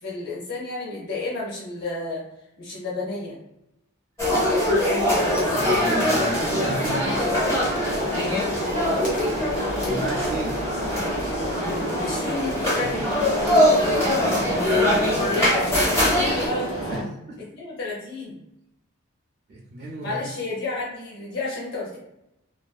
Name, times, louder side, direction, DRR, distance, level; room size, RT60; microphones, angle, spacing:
voice 1, 0.0-2.2 2.6-3.4 8.1-8.5 11.8-13.1 15.3-16.7 17.6-18.4 20.0-22.0, left 3 dB, 50° left, -5 dB, 0.6 m, -31 dB
sound 1, 4.2-16.5, left 1 dB, 15° left, 0.7 m, -23 dB
sound 2, 5.0-17.0, right 1 dB, 35° left, 1.0 m, -30 dB
voice 2, 5.5-7.1 9.9-10.6 11.9-12.1 12.8-12.9 15.1-15.5 16.9-17.4 19.5-20.2, right 1 dB, 40° right, -3 dB, 0.3 m, -34 dB
2.4 x 2.4 x 2.2 m, 0.85 s
head